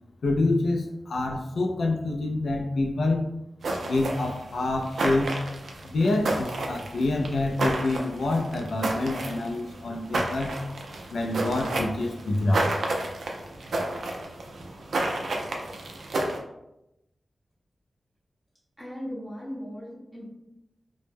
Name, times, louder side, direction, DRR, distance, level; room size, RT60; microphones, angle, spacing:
voice 1, 0.2-3.3 3.8-5.3 5.8-10.6 11.1-12.7, left 2 dB, 85° left, 1 dB, 0.3 m, -27 dB
sound 1, 3.6-16.4, right 2 dB, 90° right, 0.4 m, -31 dB
voice 2, 18.8-20.3, equal, 5° right, -8 dB, 0.6 m, -37 dB
2.0 x 2.0 x 3.2 m, 0.88 s
wide cardioid pair, 125°, 0 cm